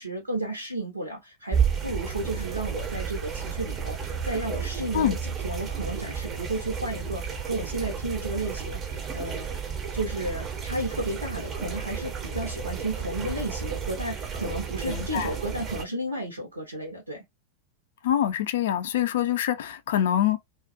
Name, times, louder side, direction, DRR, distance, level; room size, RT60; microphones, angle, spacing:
voice 1, 0.0-9.6 9.9-17.2, right 1 dB, 80° right, 0.6 m, -33 dB
sound 1, 1.5-15.8, right 7 dB, 25° right, 0.5 m, -32 dB
voice 2, 14.9-15.3 18.0-20.4, left 11 dB, 60° left, 0.4 m, -25 dB
2.4 x 2.0 x 2.5 m
figure-of-eight pair, 90°, 0 cm